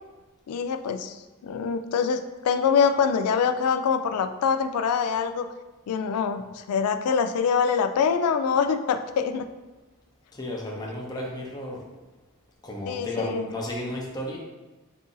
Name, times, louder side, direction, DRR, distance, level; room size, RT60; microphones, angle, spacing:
voice 1, 0.5-5.5 5.9-9.5 12.9-13.4, left 6 dB, 85° left, 9 dB, 0.3 m, -24 dB
voice 2, 10.3-11.9 12.6-14.4, left 1 dB, 20° left, -3 dB, 0.6 m, -33 dB
4.0 x 2.6 x 3.8 m, 1.1 s
head